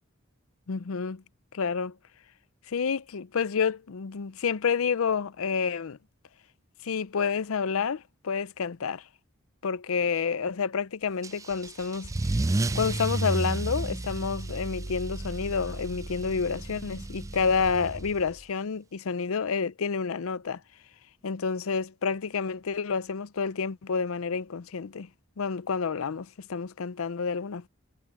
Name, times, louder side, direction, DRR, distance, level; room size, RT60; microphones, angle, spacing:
voice 1, 0.7-1.2 1.5-2.0 2.7-6.0 6.8-9.1 9.6-12.4 12.7-20.6 21.2-25.1 25.4-27.7, left 5 dB, 85° left, 0.6 m, -29 dB
Car / Engine starting / Accelerating revving vroom, 11.2-18.4, right 2 dB, 15° right, 0.4 m, -32 dB
head